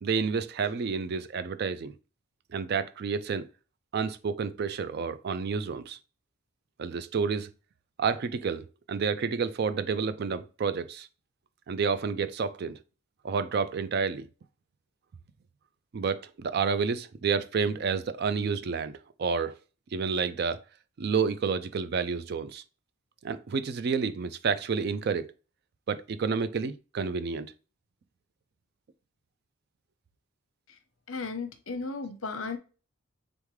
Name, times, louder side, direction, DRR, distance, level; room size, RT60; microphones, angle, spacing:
voice 1, 0.0-1.9 2.5-3.5 3.9-6.0 6.8-7.5 8.0-11.1 11.7-12.8 13.2-14.3 15.9-19.6 19.9-20.6 21.0-22.6 23.2-25.3 25.9-27.5, right 5 dB, 50° right, 0.3 m, -30 dB
voice 2, 31.1-32.6, left 4 dB, 75° left, 0.8 m, -35 dB
3.6 x 3.6 x 3.1 m
head